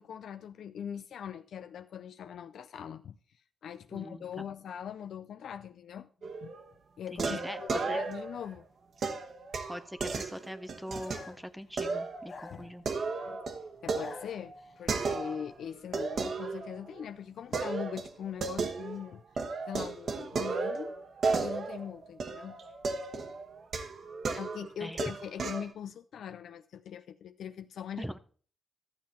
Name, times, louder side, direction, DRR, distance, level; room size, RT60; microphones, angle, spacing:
voice 1, 0.0-6.5 7.0-8.6 12.5-12.7 13.0-13.4 13.8-19.2 19.7-21.0 21.4-22.6 24.4-28.1, left 8 dB, 85° left, 0.4 m, -41 dB
voice 2, 3.9-4.4 7.1-8.0 9.7-12.8 24.8-25.0 28.0-28.2, equal, ahead, 0.6 m, -42 dB
sound 1, 6.2-6.7 7.2-8.4 9.0-11.2 11.8-12.3 12.6-15.5 15.9-17.0 17.5-19.1 19.4-25.7, right 4 dB, 55° right, 1.1 m, -34 dB
sound 2, 11.0-11.5 12.2-13.2 13.8-14.8, left 4 dB, 40° left, 1.0 m, -48 dB
12.5 x 8.5 x 4.4 m
wide cardioid pair, 150°, 0 cm